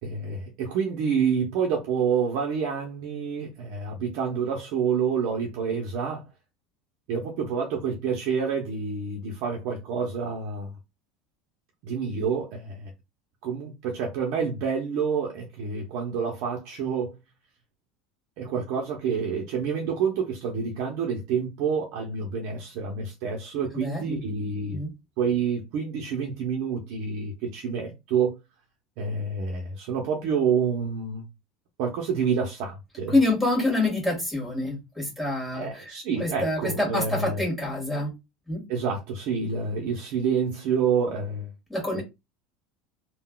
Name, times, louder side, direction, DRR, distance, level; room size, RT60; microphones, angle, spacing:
voice 1, 0.0-6.3 7.1-10.7 11.8-12.9 13.4-17.1 18.4-24.8 25.2-28.4 29.0-31.2 31.8-33.2 35.5-37.4 38.7-41.5 41.9-42.0, right 6 dB, 60° right, 0.8 m, -28 dB
voice 2, 23.5-24.2 24.7-24.9 33.1-35.9 36.2-38.1 38.5-38.6 41.7-42.0, left 2 dB, ahead, 1.6 m, -26 dB
3.7 x 2.3 x 2.3 m
supercardioid pair, 130°, 0 cm